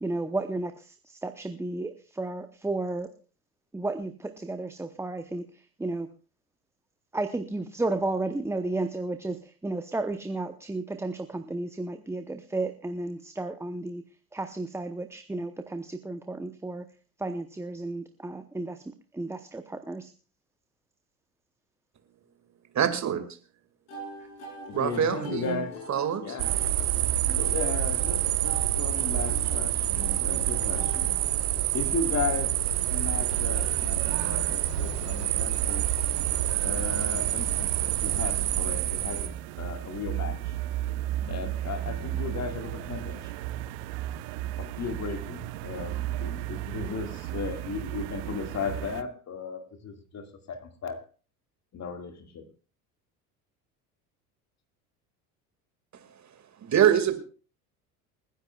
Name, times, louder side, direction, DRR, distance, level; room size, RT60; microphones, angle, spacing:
voice 1, 0.0-3.1 3.7-6.1 7.1-14.0 14.3-16.9 17.2-20.1, right 2 dB, 5° right, 0.8 m, -33 dB
voice 2, 22.7-23.2 24.7-25.6 25.9-26.4 56.1-56.2 56.6-57.2, right 9 dB, 35° right, 2.1 m, -24 dB
sound 1, 23.9-31.8, equal, 70° left, 4.3 m, -44 dB
voice 3, 24.7-25.8 26.2-26.5 27.3-31.2 31.7-35.9 36.6-40.6 41.3-43.3 44.6-51.0 51.7-52.5, left 5 dB, 35° left, 2.0 m, -36 dB
sound 2, 26.4-39.3, right 12 dB, 75° right, 1.3 m, -27 dB
sound 3, 32.6-49.0, right 13 dB, 60° right, 0.9 m, -35 dB
28.0 x 10.5 x 2.4 m
hypercardioid pair, 70°, 46 cm